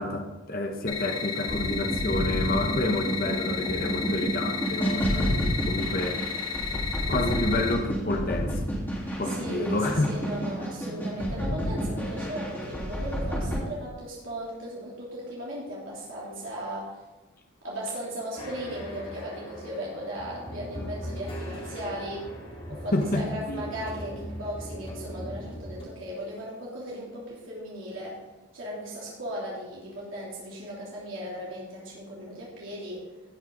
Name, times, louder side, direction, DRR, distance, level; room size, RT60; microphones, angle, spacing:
voice 1, 0.0-6.2 6.7-8.6 9.2-10.1 22.9-23.6, left 2 dB, 45° left, 3 dB, 1.1 m, -29 dB
sound 1, 0.9-7.7, left 6 dB, 70° left, 2.5 m, -33 dB
sound 2, 1.5-13.6, equal, 10° left, 3.3 m, -30 dB
voice 2, 9.2-17.0 17.6-22.3 22.7-28.2 28.5-33.1, equal, 70° right, -6 dB, 3.3 m, -37 dB
sound 3, 18.4-25.8, equal, 25° left, 2.3 m, -39 dB
17.5 x 6.3 x 4.0 m, 1.1 s
head